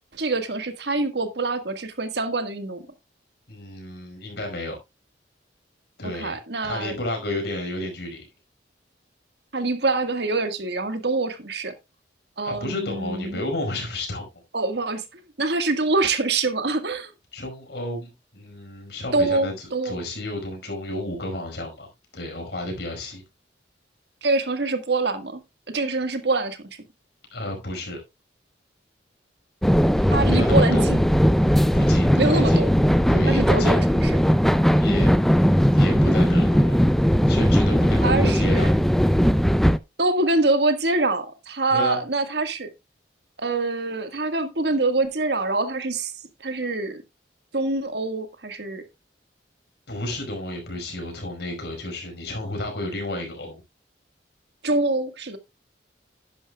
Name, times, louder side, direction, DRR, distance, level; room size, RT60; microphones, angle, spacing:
voice 1, 0.1-2.9 6.0-7.0 9.5-11.7 12.4-13.4 14.5-17.1 19.1-20.0 24.2-25.4 25.7-26.6 30.1-31.0 32.1-32.7 33.3-34.1 38.0-38.7 40.0-42.7 43.4-46.1 46.4-47.0 47.5-48.8 54.6-55.4, right 3 dB, 65° right, 1.6 m, -25 dB
voice 2, 3.5-4.8 6.0-6.4 6.6-8.3 12.4-14.3 17.3-23.2 27.3-28.0 30.2-30.9 31.7-32.6 33.1-33.7 34.7-35.1 35.7-36.9 37.3-38.7 41.7-42.0 49.9-53.6, left 1 dB, 65° left, 5.1 m, -32 dB
sound 1, 29.6-39.8, equal, ahead, 0.4 m, -18 dB
11.0 x 10.5 x 2.3 m
head